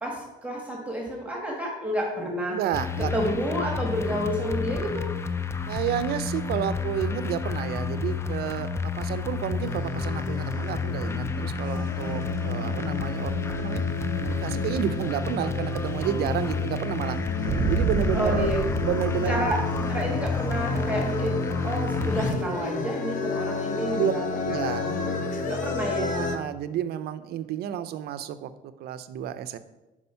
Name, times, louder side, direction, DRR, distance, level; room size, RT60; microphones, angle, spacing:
voice 1, 0.0-2.6 3.0-5.1 18.1-18.6 19.3-24.5 24.8-26.1, right 1 dB, 10° right, -1 dB, 1.4 m, -30 dB
voice 2, 2.5-3.1 5.7-13.8 14.2-17.2 17.5-18.5 18.8-19.6 23.9-24.1 24.5-24.8 26.1-29.6, right 10 dB, 70° right, 12 dB, 0.5 m, -31 dB
sound 1, 2.7-22.3, left 5 dB, 15° left, 0.4 m, -30 dB
sound 2, 9.6-26.4, left 3 dB, 50° left, 0.7 m, -31 dB
sound 3, 17.5-20.1, right 6 dB, 40° right, 0.8 m, -29 dB
5.4 x 4.9 x 5.6 m, 1.0 s
cardioid pair, 110°, 17 cm